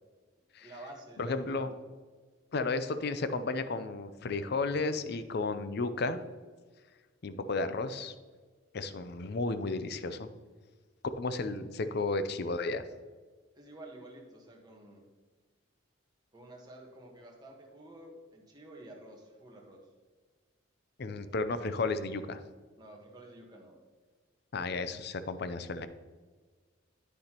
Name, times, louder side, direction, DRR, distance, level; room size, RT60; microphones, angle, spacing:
voice 1, 0.6-1.8 13.5-15.0 16.3-19.9 22.8-23.8, right 1 dB, 20° right, -1 dB, 1.3 m, -50 dB
voice 2, 1.2-1.7 2.5-6.2 7.2-8.1 8.7-10.3 11.2-12.8 21.0-22.4 24.5-25.9, left 3 dB, 50° left, 11 dB, 0.5 m, -33 dB
9.6 x 6.6 x 2.9 m, 1.4 s
head